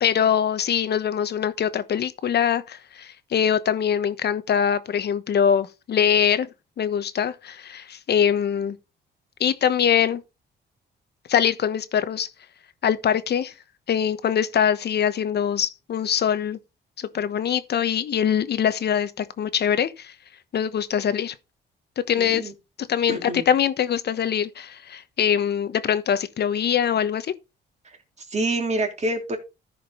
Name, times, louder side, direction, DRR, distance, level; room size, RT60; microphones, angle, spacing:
voice 1, 0.0-6.5 6.8-8.8 9.4-10.2 11.3-12.3 12.8-13.5 13.9-16.6 17.0-20.1 20.5-21.3 22.1-22.5 22.9-27.3, left 8 dB, 55° left, 1.1 m, -23 dB
voice 2, 22.2-22.5 23.1-23.5 28.3-29.4, right 2 dB, 35° right, 3.1 m, -26 dB
14.0 x 5.2 x 3.8 m
cardioid pair, 90°, 20 cm